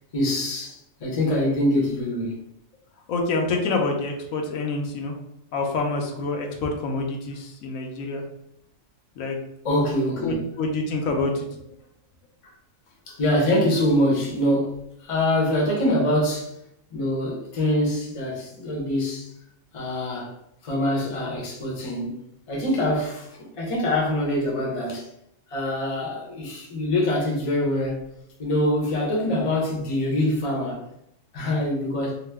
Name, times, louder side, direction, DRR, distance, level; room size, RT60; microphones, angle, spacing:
voice 1, 0.1-2.4 9.6-10.4 13.1-16.5 16.9-19.3 19.7-20.4 20.6-22.2 22.5-23.3 23.6-25.1 25.5-28.0 28.4-30.8 31.3-32.2, left 1 dB, 35° left, -2 dB, 0.6 m, -24 dB
voice 2, 3.1-5.2 5.5-8.2 9.2-9.4 10.1-11.6, left 3 dB, 75° left, 2 dB, 1.0 m, -27 dB
2.9 x 2.1 x 3.3 m, 0.80 s
omnidirectional pair, 1.4 m